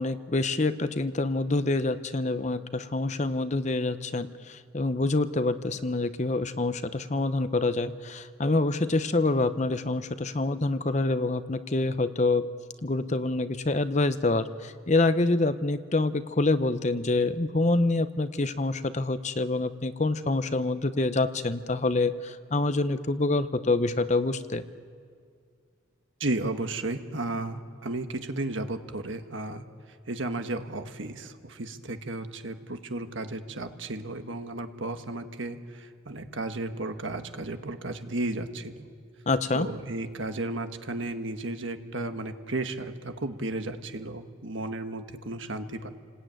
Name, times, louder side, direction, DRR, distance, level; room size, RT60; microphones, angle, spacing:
voice 1, 0.0-12.5 12.8-24.6 39.3-39.7, left 2 dB, 35° left, 11 dB, 0.8 m, -26 dB
voice 2, 26.2-29.6 30.1-38.9 39.5-45.9, right 2 dB, 70° right, 7 dB, 1.4 m, -34 dB
29.0 x 19.5 x 9.1 m, 2.2 s
head